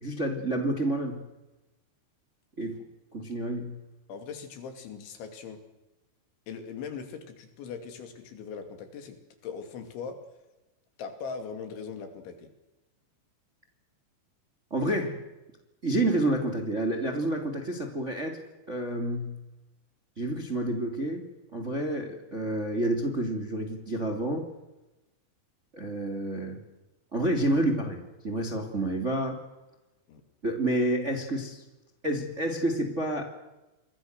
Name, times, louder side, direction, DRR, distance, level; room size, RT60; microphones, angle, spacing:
voice 1, 0.0-1.2 2.6-2.8 3.1-3.8 14.7-15.2 15.8-18.4 18.7-19.4 20.2-21.3 21.5-24.5 25.7-26.6 27.1-29.4 30.4-31.6 32.0-33.2, right 1 dB, 20° right, 4 dB, 2.2 m, -29 dB
voice 2, 4.1-5.6 6.5-9.2 9.4-10.2 11.0-12.5 30.1-30.2, left 6 dB, 75° left, 7 dB, 4.9 m, -40 dB
29.0 x 23.0 x 6.7 m, 1.0 s
omnidirectional pair, 5.4 m